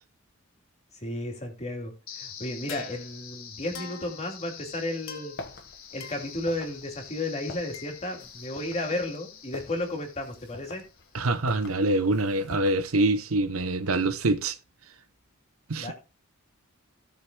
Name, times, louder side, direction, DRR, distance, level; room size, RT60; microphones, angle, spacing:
voice 1, 1.0-5.3 5.9-10.8 15.8-15.9, left 1 dB, 30° left, 2.7 m, -33 dB
sound 1, 2.1-11.1, left 7 dB, 80° left, 1.7 m, -44 dB
sound 2, 5.4-13.2, left 2 dB, 60° left, 1.5 m, -46 dB
voice 2, 11.1-14.6 15.7-15.9, right 2 dB, 90° right, 0.9 m, -25 dB
17.0 x 6.6 x 2.3 m
head